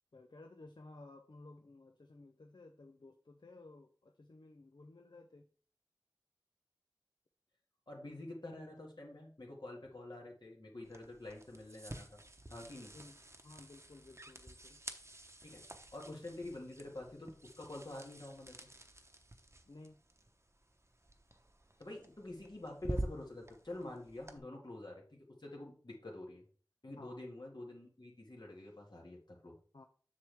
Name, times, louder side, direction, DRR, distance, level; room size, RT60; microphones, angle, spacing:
voice 1, 0.1-5.5 12.9-14.8 19.7-20.0 27.0-27.2 29.7-29.9, left 2 dB, 90° left, 5 dB, 0.5 m, -56 dB
voice 2, 7.9-12.2 12.5-12.9 15.4-15.6 15.9-18.7 21.8-26.4 26.8-29.6, left 2 dB, 75° left, -1 dB, 2.1 m, -47 dB
sound 1, 10.8-24.4, right 1 dB, 40° right, 0.9 m, -49 dB
7.4 x 6.1 x 3.5 m, 0.43 s
wide cardioid pair, 40°, 8 cm